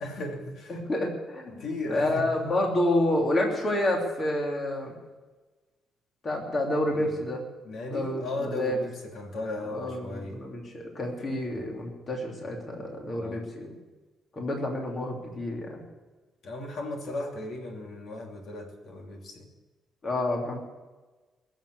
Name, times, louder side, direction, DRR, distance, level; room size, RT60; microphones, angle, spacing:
voice 1, 0.0-0.8 1.5-2.3 6.9-7.2 7.6-10.5 11.5-11.6 13.2-13.5 16.4-19.5, left 2 dB, 55° left, 2 dB, 2.8 m, -36 dB
voice 2, 0.7-1.6 1.9-5.0 6.2-7.4 7.9-8.8 9.7-13.7 14.3-15.8 20.0-20.6, left 1 dB, 30° left, 0 dB, 3.1 m, -29 dB
20.5 x 7.6 x 8.2 m, 1.2 s
cardioid pair, 155°, 0 cm